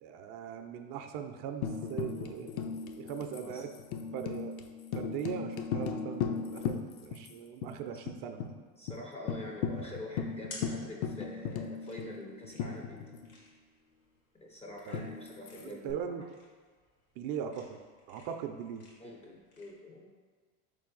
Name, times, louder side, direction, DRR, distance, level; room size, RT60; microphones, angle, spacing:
voice 1, 0.0-2.7 3.0-3.7 4.1-4.6 4.9-8.5 14.9-15.1 15.5-16.2 17.2-17.8 18.1-18.9, right 8 dB, 55° right, 6 dB, 0.5 m, -40 dB
Tambourine, 1.6-7.3 7.6-7.7 8.1-8.5 8.9-9.0 9.3-13.4 14.9-15.9, left 6 dB, 70° left, 0.5 m, -37 dB
voice 2, 8.8-13.2 14.3-16.3 19.0-20.1, left 1 dB, 15° left, -1 dB, 0.3 m, -46 dB
sound 1, 9.4-19.7, left 2 dB, 90° left, 1.4 m, -54 dB
4.0 x 3.3 x 3.8 m, 1.5 s
supercardioid pair, 105°, 43 cm